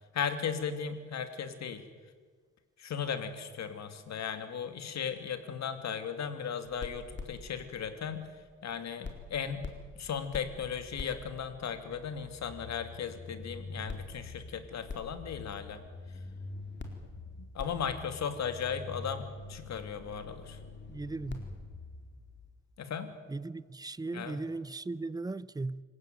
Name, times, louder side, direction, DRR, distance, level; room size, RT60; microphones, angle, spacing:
voice 1, 0.1-1.8 2.8-9.6 9.9-15.8 17.4-20.6 22.8-23.1 24.1-24.4, left 7 dB, 65° left, 2.8 m, -36 dB
sound 1, 6.6-8.7 9.0-22.5, left 3 dB, 40° left, 4.3 m, -45 dB
voice 2, 20.9-21.4 23.3-25.8, right 3 dB, 15° right, 0.7 m, -37 dB
26.5 x 16.5 x 9.4 m
cardioid pair, 90°, 30 cm